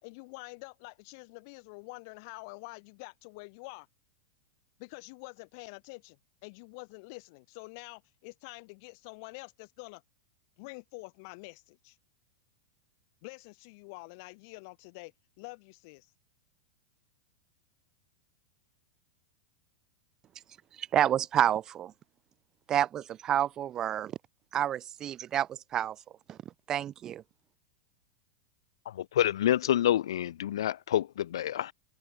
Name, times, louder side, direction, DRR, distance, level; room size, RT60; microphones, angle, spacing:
voice 1, 0.0-3.9 4.8-10.0 10.6-12.0 13.2-16.1, left 30 dB, 45° left, 3.3 m, -47 dB
voice 2, 20.8-21.9 22.7-24.1 24.5-26.0 26.3-26.4 26.7-27.2, right 10 dB, 20° right, 0.4 m, -29 dB
voice 3, 28.9-31.7, left 11 dB, 85° left, 0.7 m, -27 dB
supercardioid pair, 160°, 3 cm